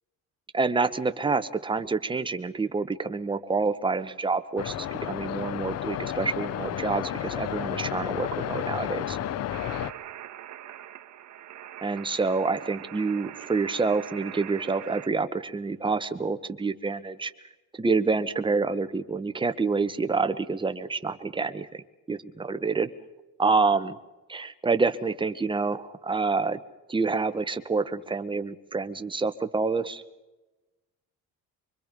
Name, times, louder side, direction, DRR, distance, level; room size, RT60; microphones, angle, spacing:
voice 1, 0.5-9.2 11.8-17.3 17.8-22.9 23.4-24.0 24.3-26.6 26.9-30.0, right 4 dB, 15° right, 9 dB, 1.0 m, -27 dB
sound 1, 4.6-9.9, left 10 dB, 50° left, 0.7 m, -32 dB
sound 2, 9.5-15.1, right 12 dB, 55° right, 1.6 m, -43 dB
25.0 x 23.5 x 5.3 m, 1.1 s
cardioid pair, 135°, 33 cm